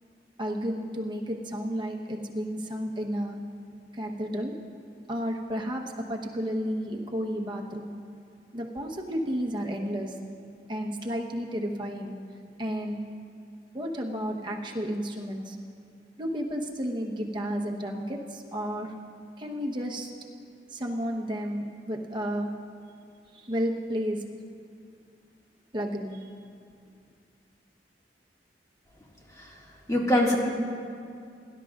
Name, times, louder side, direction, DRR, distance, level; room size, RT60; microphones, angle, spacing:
voice 1, 0.4-3.4 3.9-4.5 5.1-7.9 8.5-10.2 10.7-12.2 12.6-13.1 13.7-15.6 16.2-18.9 19.4-20.1 20.7-22.5 23.3-24.2 25.7-26.2, equal, 25° right, 0 dB, 1.0 m, -32 dB
voice 2, 29.9-30.4, left 1 dB, 20° left, -4 dB, 2.0 m, -24 dB
22.5 x 12.0 x 2.5 m, 2.4 s
head